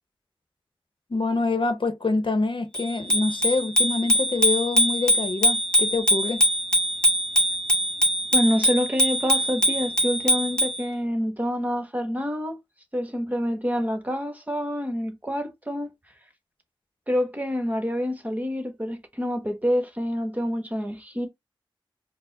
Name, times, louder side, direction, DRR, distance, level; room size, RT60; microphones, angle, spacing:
voice 1, 1.1-6.4, left 3 dB, 70° left, 0.8 m, -26 dB
Bicycle bell, 2.7-10.8, equal, 10° left, 1.2 m, -22 dB
voice 2, 8.3-12.6 12.9-15.9 17.1-21.3, equal, 15° right, 1.1 m, -27 dB
4.6 x 2.1 x 3.9 m
wide cardioid pair, 75°, 9 cm